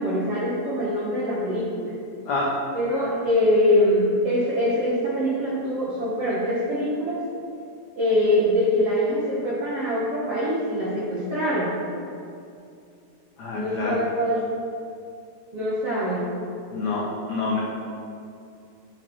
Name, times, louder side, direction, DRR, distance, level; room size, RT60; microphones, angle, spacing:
voice 1, 0.0-1.9 2.7-7.2 7.9-11.8 13.5-14.4 15.5-16.3, left 1 dB, 60° right, -8 dB, 1.5 m, -23 dB
voice 2, 13.4-13.9 16.7-17.6, left 3 dB, 90° left, -5 dB, 1.5 m, -27 dB
8.7 x 8.4 x 4.7 m, 2.5 s
omnidirectional pair, 4.9 m